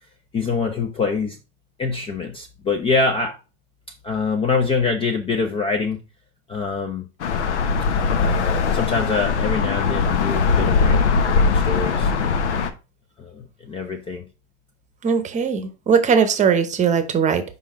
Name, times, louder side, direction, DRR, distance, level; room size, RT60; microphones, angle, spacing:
voice 1, 0.3-1.4 1.8-3.4 4.0-6.0 6.5-7.1 8.1-12.1 13.2-14.3, left 4 dB, 15° left, 0.4 m, -25 dB
sound 1, 7.2-12.7, left 5 dB, 90° left, 1.0 m, -20 dB
voice 2, 15.0-17.4, right 6 dB, 20° right, 0.9 m, -19 dB
5.5 x 4.9 x 3.5 m
supercardioid pair, 125°, 34 cm